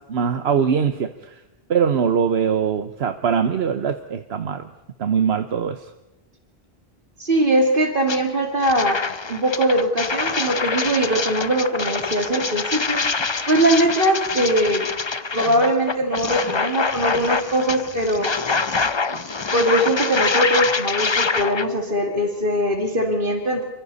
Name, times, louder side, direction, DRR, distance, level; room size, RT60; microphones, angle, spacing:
voice 1, 0.1-1.4 1.7-4.7 5.0-5.8, right 7 dB, 85° right, 8 dB, 1.1 m, -22 dB
voice 2, 7.2-9.0 9.3-13.0 13.5-14.9 15.3-18.3 19.1-19.2 19.5-23.6, right 1 dB, 55° right, 3 dB, 2.6 m, -21 dB
sound 1, 8.1-8.2 8.6-21.6, left 4 dB, 30° left, 0.7 m, -25 dB
28.5 x 24.5 x 4.1 m, 0.98 s
omnidirectional pair, 1.0 m